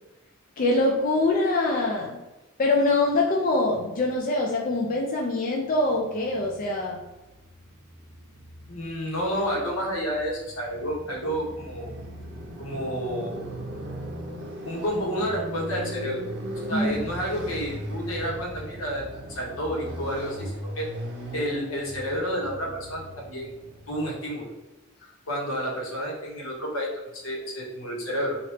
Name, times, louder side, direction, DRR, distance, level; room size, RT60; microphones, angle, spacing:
voice 1, 0.6-2.2 2.6-7.0 16.7-17.0, left 2 dB, 40° left, 0 dB, 0.4 m, -24 dB
Motorcycle, 6.1-24.3, equal, 55° right, 0.6 m, -39 dB
voice 2, 8.7-11.9 12.6-13.4 14.6-16.3 16.6-20.9 21.3-23.5 23.9-24.5 25.3-28.4, equal, 80° left, -3 dB, 1.0 m, -30 dB
3.1 x 2.4 x 3.2 m, 1.1 s
head